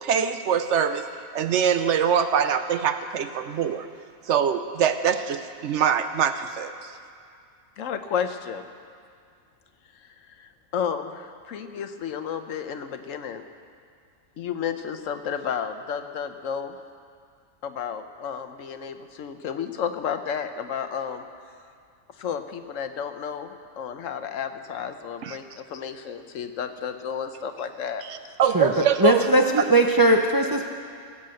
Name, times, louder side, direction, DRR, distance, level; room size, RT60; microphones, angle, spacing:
voice 1, 0.0-1.1 1.3-3.9 4.3-6.7 25.2-25.4 28.0-29.3, right 8 dB, 65° right, 9 dB, 0.9 m, -23 dB
voice 2, 7.8-8.7 10.0-13.4 14.4-16.8 17.6-21.2 22.2-28.4, left 7 dB, 75° left, 9 dB, 1.1 m, -32 dB
voice 3, 28.5-30.6, right 1 dB, 25° right, 3 dB, 0.5 m, -19 dB
17.0 x 7.6 x 7.7 m, 2.2 s
omnidirectional pair, 1.4 m